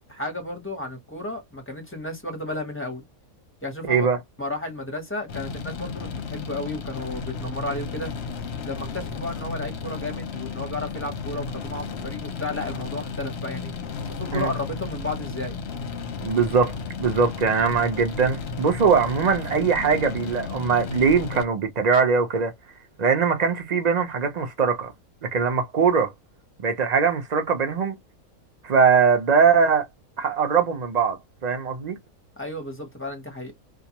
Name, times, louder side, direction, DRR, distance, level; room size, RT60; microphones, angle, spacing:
voice 1, 0.1-3.0 3.6-4.1 4.4-8.1 8.6-13.7 14.1-15.6 32.4-33.5, left 2 dB, 10° left, 0.7 m, -33 dB
voice 2, 3.9-4.2 14.3-14.5 16.2-16.7 17.0-22.5 23.0-24.9 25.2-26.1 26.6-28.0 28.6-29.9 30.2-32.0, right 5 dB, 45° right, 0.5 m, -21 dB
sound 1, 5.3-21.5, left 5 dB, 55° left, 0.8 m, -33 dB
2.4 x 2.3 x 2.8 m
omnidirectional pair, 1.5 m